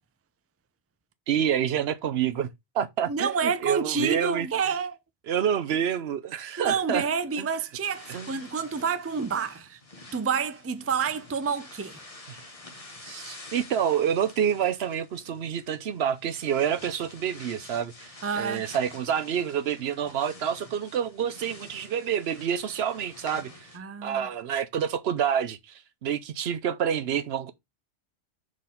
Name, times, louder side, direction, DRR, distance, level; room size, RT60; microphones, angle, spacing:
voice 1, 1.3-2.5 2.7-4.5 5.3-7.0 7.4-7.5 8.1-8.3 12.3-12.4 13.0-23.7 24.0-27.5, right 8 dB, 70° right, 0.9 m, -28 dB
voice 2, 3.1-5.0 6.6-9.8 10.1-12.0 18.2-18.7 23.7-24.3, right 6 dB, 20° right, 0.4 m, -29 dB
sound 1, 7.7-23.8, left 2 dB, 35° left, 1.4 m, -48 dB
4.9 x 4.0 x 5.6 m
omnidirectional pair, 1.1 m